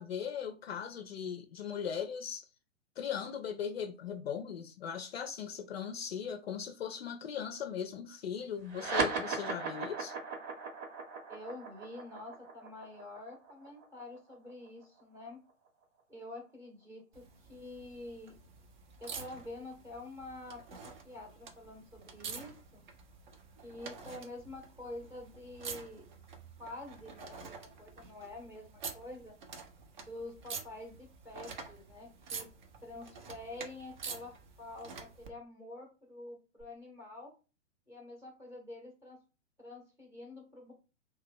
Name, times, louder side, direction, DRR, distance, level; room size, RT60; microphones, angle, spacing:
voice 1, 0.0-2.4 3.0-10.1, left 8 dB, 50° left, 0.4 m, -39 dB
sound 1, 8.7-15.5, right 4 dB, 60° right, 1.1 m, -38 dB
voice 2, 11.3-15.4 16.1-18.3 19.0-20.6 21.0-22.8 23.6-26.0 26.6-29.3 30.0-32.5 32.8-37.3 37.9-39.2 39.6-40.7, left 2 dB, 5° right, 0.8 m, -47 dB
sound 2, 17.1-35.3 36.6-36.7, right 5 dB, 40° right, 0.6 m, -48 dB
2.8 x 2.2 x 3.5 m
figure-of-eight pair, 120°, 39 cm